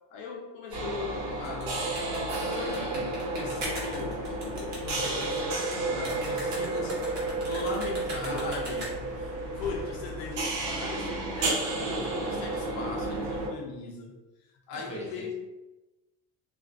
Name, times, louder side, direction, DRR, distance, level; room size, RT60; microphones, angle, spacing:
voice 1, 0.1-14.2 14.7-15.3, left 4 dB, 90° left, 1 dB, 0.6 m, -39 dB
sound 1, 0.7-13.5, right 2 dB, 85° right, 1.0 m, -32 dB
sound 2, 1.3-9.2, right 1 dB, 40° right, 0.9 m, -40 dB
voice 2, 8.3-8.8 14.7-15.3, equal, 15° left, -5 dB, 0.5 m, -41 dB
2.4 x 2.3 x 2.3 m, 1.1 s
cardioid pair, 145°, 42 cm